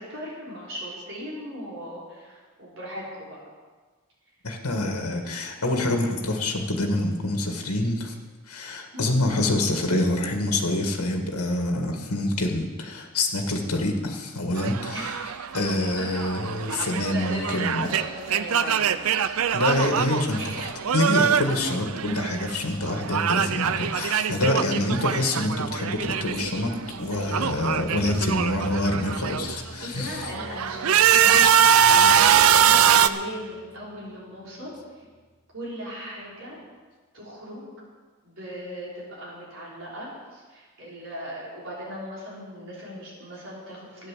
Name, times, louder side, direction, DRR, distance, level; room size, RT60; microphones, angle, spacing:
voice 1, 0.0-3.4 8.9-9.1 14.6-15.1 16.0-16.1 16.7-19.4 20.3-20.5 28.0-28.6 29.8-35.0 35.5-36.6 37.1-37.7 38.2-44.1, equal, 60° right, -6 dB, 5.3 m, -38 dB
voice 2, 4.4-8.1 8.5-17.9 19.5-26.7 27.0-30.3 32.6-32.7 34.1-34.2 37.5-37.6, left 1 dB, 85° left, 3 dB, 1.8 m, -26 dB
sound 1, 14.6-22.6 22.8-26.6 26.9-29.6 30.1-33.1, right 8 dB, 75° right, 0.5 m, -23 dB
sound 2, 27.2-34.1 34.4-34.8 35.2-35.3, equal, 35° left, 4.3 m, -43 dB
12.0 x 9.8 x 7.5 m, 1.4 s
head